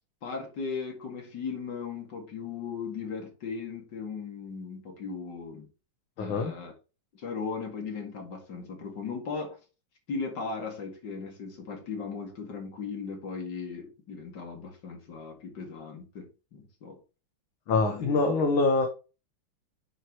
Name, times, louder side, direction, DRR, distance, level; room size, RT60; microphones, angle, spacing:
voice 1, 0.2-5.7 6.2-6.7 7.1-9.6 10.1-17.0 17.8-18.2, left 5 dB, 50° left, 2.7 m, -37 dB
voice 2, 6.2-6.5 17.7-18.9, left 3 dB, 70° left, 1.9 m, -24 dB
7.9 x 4.6 x 4.4 m
omnidirectional pair, 2.4 m